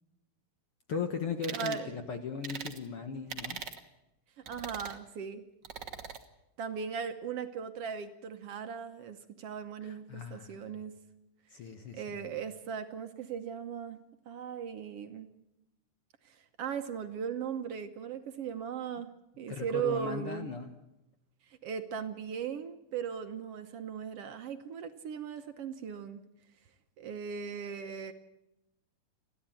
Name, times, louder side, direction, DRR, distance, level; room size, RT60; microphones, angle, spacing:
voice 1, 0.9-3.6 9.8-10.8 11.5-12.3 19.5-20.7, left 5 dB, 55° left, 6 dB, 1.8 m, -38 dB
sound 1, 1.4-1.8 2.4-2.8 3.3-3.8 4.5-5.0 5.6-6.2, right 7 dB, 50° right, 1.5 m, -41 dB
voice 2, 1.5-2.0 4.5-5.4 6.6-10.9 11.9-14.0 14.2-15.3 16.2-19.1 19.4-20.5 21.5-26.2 27.0-28.1, right 7 dB, 65° right, 8 dB, 1.6 m, -38 dB
29.5 x 11.5 x 9.0 m, 0.89 s
omnidirectional pair, 3.7 m